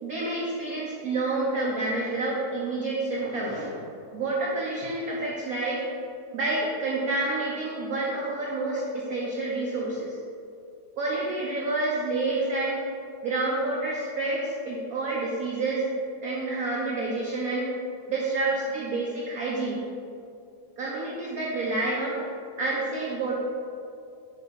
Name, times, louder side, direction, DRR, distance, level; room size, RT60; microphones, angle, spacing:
voice 1, 0.0-3.7 4.1-5.8 6.3-10.2 11.0-12.8 13.2-15.9 16.2-17.7 18.1-19.8 20.8-22.2 22.6-23.4, right 2 dB, 65° right, -4 dB, 0.9 m, -28 dB
7.0 x 2.9 x 5.2 m, 2.5 s
omnidirectional pair, 2.2 m